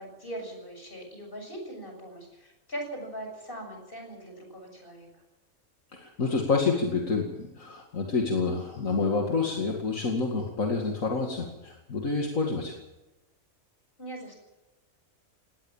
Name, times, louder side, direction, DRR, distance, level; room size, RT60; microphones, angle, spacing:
voice 1, 0.0-5.1 14.0-14.4, right 1 dB, 40° left, 3 dB, 7.3 m, -40 dB
voice 2, 5.9-12.7, left 4 dB, 65° left, 1 dB, 2.6 m, -28 dB
19.5 x 18.5 x 7.3 m, 1.0 s
omnidirectional pair, 1.5 m